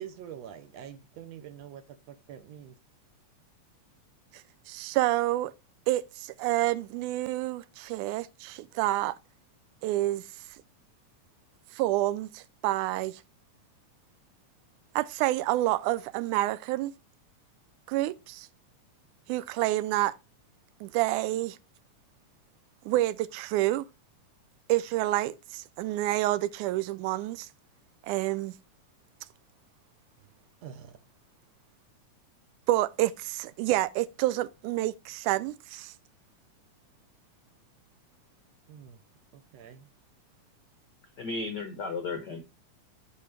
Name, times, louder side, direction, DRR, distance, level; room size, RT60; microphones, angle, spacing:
voice 1, 0.0-2.7 30.6-30.9 38.7-39.0 39.3-39.9, right 9 dB, 70° right, 1.7 m, -45 dB
voice 2, 4.7-5.5 5.9-9.2 9.8-10.2 11.7-13.2 15.0-16.9 17.9-18.5 19.3-20.1 20.8-21.6 22.9-23.9 24.7-27.5 28.0-28.5 32.7-35.9, right 16 dB, 85° right, 2.0 m, -28 dB
voice 3, 41.2-42.4, left 3 dB, 80° left, 0.9 m, -34 dB
7.6 x 6.4 x 3.3 m
omnidirectional pair, 3.5 m